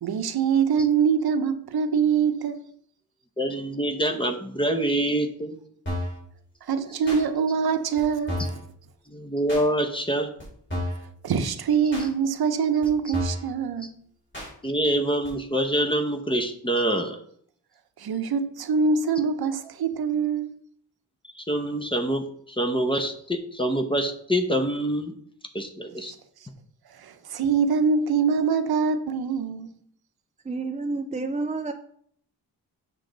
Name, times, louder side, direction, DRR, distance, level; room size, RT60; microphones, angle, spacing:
voice 1, 0.0-2.6 6.7-8.6 11.2-14.0 18.0-20.6 26.0-26.1 26.9-29.7, right 6 dB, 70° right, 0.8 m, -24 dB
voice 2, 3.4-5.6 9.1-10.3 14.6-17.2 21.4-25.1 25.5-26.1, right 1 dB, 15° left, 0.8 m, -25 dB
sound 1, 5.9-6.2 7.1-7.2 8.0-8.1 8.3-8.6 9.5-9.7 10.4-10.5 10.7-11.1 11.9-12.1 12.8-12.9 13.1-13.5 14.3-14.5 15.2-15.3, left 1 dB, 30° left, 3.8 m, -31 dB
voice 3, 30.5-31.7, right 3 dB, 20° right, 0.3 m, -29 dB
7.6 x 6.3 x 3.9 m
wide cardioid pair, 150°, 39 cm